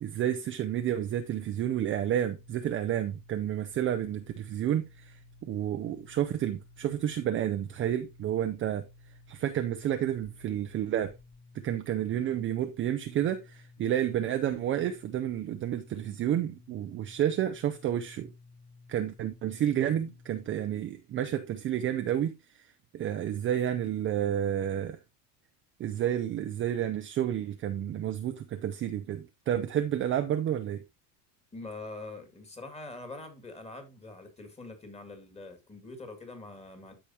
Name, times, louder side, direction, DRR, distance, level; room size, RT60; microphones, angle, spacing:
voice 1, 0.0-5.1 5.4-8.8 9.3-11.1 11.6-18.3 18.9-22.3 22.9-25.0 25.8-30.8, right 10 dB, 25° right, 0.5 m, -30 dB
sound 1, 1.0-20.7, left 3 dB, 80° left, 5.5 m, -55 dB
voice 2, 31.5-36.9, left 2 dB, 15° left, 2.1 m, -44 dB
13.5 x 5.0 x 2.8 m
cardioid pair, 145°, 46 cm